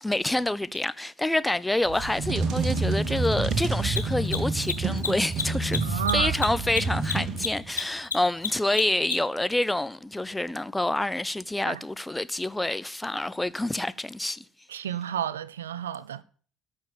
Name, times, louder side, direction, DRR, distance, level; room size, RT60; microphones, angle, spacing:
voice 1, 0.0-14.4, left 1 dB, 10° left, 0.8 m, -27 dB
Mechanisms, 0.7-0.8 3.8-9.4, left 6 dB, 90° left, 1.1 m, -31 dB
sound 1, 1.9-7.8, right 3 dB, 55° right, 2.5 m, -28 dB
voice 2, 5.8-6.4 11.7-11.8 14.7-16.2, right 9 dB, 85° right, 0.5 m, -31 dB
13.5 x 7.3 x 8.8 m
figure-of-eight pair, 55°, 0 cm